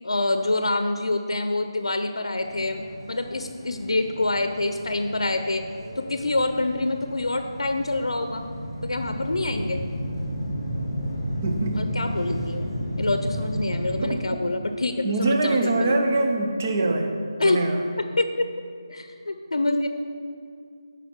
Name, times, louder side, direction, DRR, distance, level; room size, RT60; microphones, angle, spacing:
voice 1, 0.0-5.6 6.0-8.4 8.8-9.8 11.7-12.7 13.0-16.0 17.4-17.6 18.0-18.5 18.9-19.9, left 2 dB, 90° left, 7 dB, 0.6 m, -26 dB
sound 1, 2.4-14.0, equal, ahead, 1.6 m, -33 dB
voice 2, 11.4-11.8 14.0-14.2 15.0-17.2 17.4-17.8, right 2 dB, 25° right, 3 dB, 0.5 m, -23 dB
7.7 x 5.2 x 5.8 m, 2.3 s
figure-of-eight pair, 175°, 3 cm